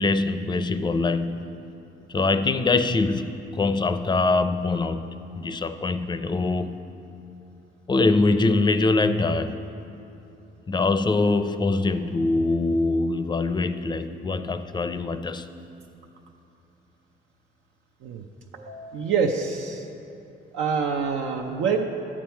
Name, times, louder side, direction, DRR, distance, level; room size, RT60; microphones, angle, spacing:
voice 1, 0.0-1.6 2.1-5.1 5.3-6.9 7.9-9.6 10.7-15.5, left 3 dB, 20° left, 10 dB, 0.5 m, -23 dB
voice 2, 18.5-19.9 20.5-21.9, right 5 dB, 85° right, 1 dB, 0.6 m, -26 dB
12.0 x 7.4 x 4.5 m, 2.9 s
cardioid pair, 90°, 20 cm